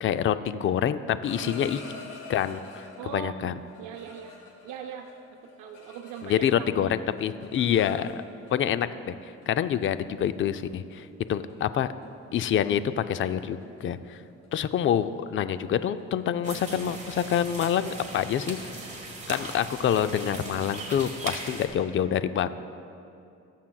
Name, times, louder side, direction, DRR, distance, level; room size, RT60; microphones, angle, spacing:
voice 1, 0.0-1.8 2.3-2.6 3.1-3.5 6.2-8.2 8.5-9.1 9.5-11.9 12.3-14.2 14.5-18.6 19.3-22.5, left 9 dB, 45° left, 12 dB, 0.4 m, -26 dB
sound 1, 1.0-3.1 3.7-6.7 7.0-8.5 9.4-9.6 9.9-10.2 10.7-10.9 11.3-11.5 11.8-12.1 12.3-17.7, left 4 dB, 85° left, 1.8 m, -47 dB
voice 2, 1.3-1.7 3.0-3.5 3.8-5.1 5.4-6.9, right 8 dB, 90° right, 2 dB, 0.6 m, -40 dB
sound 2, 16.4-21.7, right 2 dB, 25° right, 1.6 m, -39 dB
19.0 x 7.4 x 2.3 m, 2.6 s
cardioid pair, 90°, 30 cm